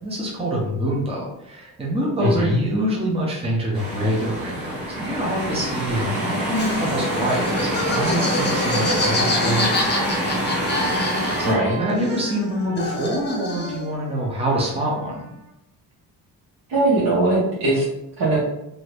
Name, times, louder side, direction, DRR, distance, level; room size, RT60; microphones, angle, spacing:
voice 1, 0.0-10.1 10.6-15.3, right 1 dB, 15° right, -3 dB, 0.7 m, -25 dB
voice 2, 2.2-2.6 11.4-11.8 16.7-17.8 18.2-18.4, right 1 dB, 80° right, -7 dB, 1.3 m, -20 dB
sound 1, 3.7-11.5, equal, 35° right, 1.4 m, -25 dB
Laughter, 6.5-11.7 12.0-13.9, left 2 dB, 25° left, 0.6 m, -27 dB
Trumpet, 8.4-15.5, right 3 dB, 60° right, 0.9 m, -40 dB
2.7 x 2.6 x 3.3 m, 0.86 s
cardioid pair, 120°, 38 cm